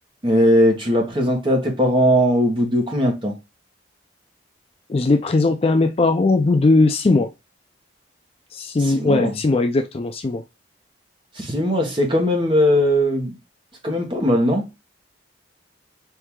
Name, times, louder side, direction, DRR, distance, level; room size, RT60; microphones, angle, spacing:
voice 1, 0.2-3.3 8.8-9.4 11.3-13.4 13.8-14.7, equal, 25° right, 1.2 m, -19 dB
voice 2, 4.9-7.3 8.5-10.4, left 3 dB, 30° left, 0.3 m, -18 dB
4.6 x 2.7 x 3.6 m
head